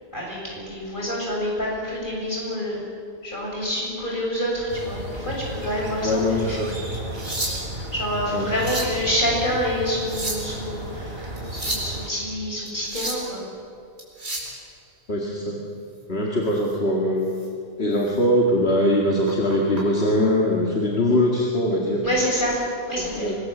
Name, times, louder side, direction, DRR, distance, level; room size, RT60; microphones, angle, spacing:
voice 1, 0.1-2.8 3.2-6.8 7.9-13.4 22.0-23.4, equal, 50° left, -3 dB, 7.4 m, -27 dB
sound 1, 4.7-12.1, right 1 dB, 65° right, 3.4 m, -34 dB
voice 2, 6.0-6.7 8.3-8.5 15.1-15.6 16.1-17.3 17.8-22.2 23.0-23.4, left 1 dB, 75° left, -2 dB, 2.5 m, -22 dB
sound 2, 6.9-7.8 8.4-9.0 9.9-10.6 11.4-11.9 12.7-13.3 14.0-14.5 16.6-16.7 17.3-17.5 17.9-18.1 19.3-19.8 20.9-21.1, right 1 dB, 90° right, 4.9 m, -31 dB
24.5 x 20.0 x 7.4 m, 2.6 s
omnidirectional pair, 1.1 m